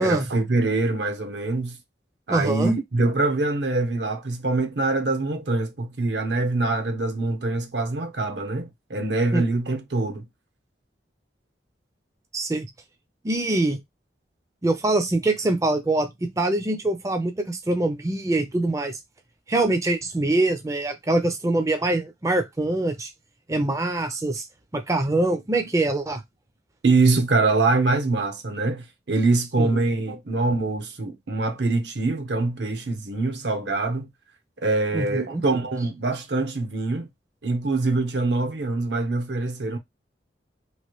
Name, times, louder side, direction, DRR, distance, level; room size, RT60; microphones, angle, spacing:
voice 1, 0.0-1.8 2.3-10.3 26.8-34.1 34.6-37.1 37.4-39.8, right 3 dB, 75° right, 0.7 m, -24 dB
voice 2, 2.3-2.8 9.3-9.4 12.3-12.7 13.2-13.8 14.6-19.0 19.5-23.1 23.5-24.5 24.7-26.2 29.6-29.8 34.9-35.4, right 2 dB, 15° right, 0.4 m, -24 dB
3.0 x 2.5 x 3.0 m
head